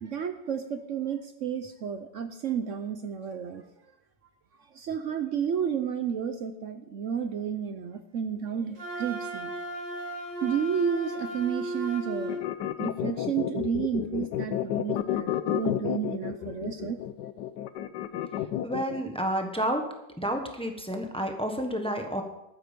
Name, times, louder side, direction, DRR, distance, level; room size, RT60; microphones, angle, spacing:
voice 1, 0.0-3.6 4.7-9.5 10.4-12.4 12.8-17.0, right 7 dB, 70° right, 8 dB, 0.7 m, -31 dB
Wind instrument woodwind instrument, 8.7-12.5, right 1 dB, 50° right, 2.6 m, -35 dB
sound 1, 12.3-19.0, left 11 dB, 70° left, 1.2 m, -30 dB
voice 2, 18.6-19.9 20.2-22.2, right 1 dB, 5° left, 4 dB, 0.9 m, -30 dB
13.0 x 9.5 x 5.2 m, 0.90 s
omnidirectional pair, 2.1 m